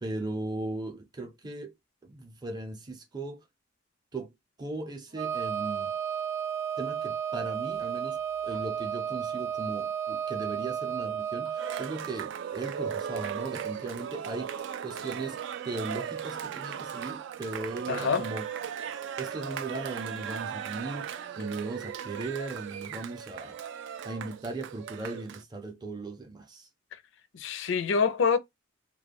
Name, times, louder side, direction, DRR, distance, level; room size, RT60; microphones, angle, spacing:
voice 1, 0.0-1.7 2.0-3.4 4.1-4.3 4.6-5.9 6.8-15.4 15.6-18.5 19.2-23.5 24.0-26.7, right 2 dB, 20° right, 0.6 m, -38 dB
Wind instrument woodwind instrument, 5.1-11.9, right 8 dB, 90° right, 0.7 m, -33 dB
Cheering, 11.6-25.4, right 8 dB, 65° right, 0.3 m, -37 dB
voice 2, 17.9-18.3 27.3-28.4, left 5 dB, 65° left, 0.4 m, -26 dB
2.2 x 2.2 x 3.4 m
head